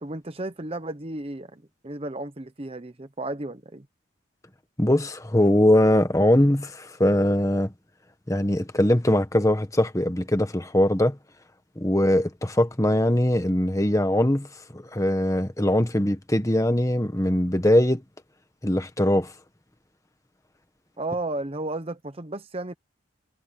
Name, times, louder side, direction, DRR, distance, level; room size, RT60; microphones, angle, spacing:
voice 1, 0.0-3.9 21.0-22.7, right 2 dB, 30° right, 0.8 m, -33 dB
voice 2, 4.8-7.7 8.3-11.2 11.8-14.5 14.7-18.0 18.6-19.3, left 1 dB, 15° left, 1.4 m, -21 dB
head